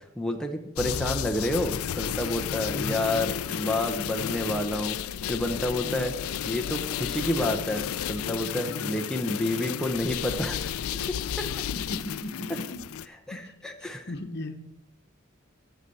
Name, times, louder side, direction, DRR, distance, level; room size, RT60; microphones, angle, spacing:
voice 1, 0.2-5.0 5.3-6.1 6.4-10.8 11.1-11.5 13.3-14.1, left 1 dB, 5° left, 2 dB, 0.7 m, -29 dB
sound 1, 0.8-13.1, left 9 dB, 90° left, 0.4 m, -32 dB
voice 2, 2.7-3.1 5.8-6.1 8.7-9.0 11.7-13.5 13.8-14.5, left 1 dB, 55° left, 7 dB, 1.1 m, -38 dB
8.1 x 6.9 x 7.7 m, 0.88 s
head